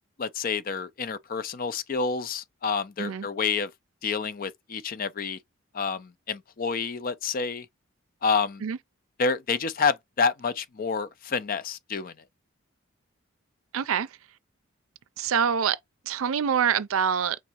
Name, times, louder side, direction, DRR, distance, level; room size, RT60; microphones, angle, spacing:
voice 1, 0.2-3.7 4.0-5.4 5.7-7.7 8.2-8.6 9.2-12.1, left 5 dB, 40° left, 0.4 m, -28 dB
voice 2, 13.7-14.1 15.2-15.8 16.1-17.4, right 7 dB, 80° right, 0.5 m, -25 dB
5.1 x 3.5 x 2.9 m
head